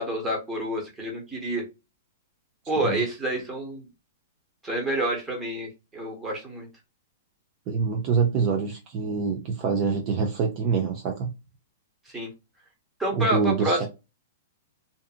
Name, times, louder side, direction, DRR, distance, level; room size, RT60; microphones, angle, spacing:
voice 1, 0.0-1.6 2.7-3.9 4.6-6.7 12.1-12.3 13.0-13.9, right 1 dB, 10° right, 0 dB, 1.2 m, -28 dB
voice 2, 7.7-11.3 13.1-13.9, right 5 dB, 35° right, 3 dB, 0.6 m, -25 dB
2.7 x 2.5 x 2.4 m, 0.26 s
hypercardioid pair, 140°, 0 cm